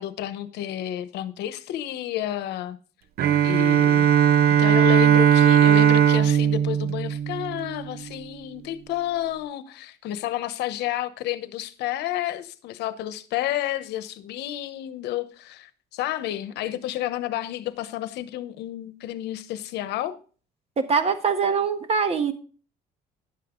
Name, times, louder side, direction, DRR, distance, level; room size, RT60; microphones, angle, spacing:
voice 1, 0.0-2.8 3.4-4.1 4.6-20.1, left 13 dB, 80° left, 0.9 m, -30 dB
Bowed string instrument, 3.2-7.9, right 9 dB, 65° right, 0.7 m, -18 dB
voice 2, 20.8-22.3, right 5 dB, 35° right, 1.4 m, -23 dB
11.0 x 7.8 x 3.8 m
cardioid pair, 110°, 17 cm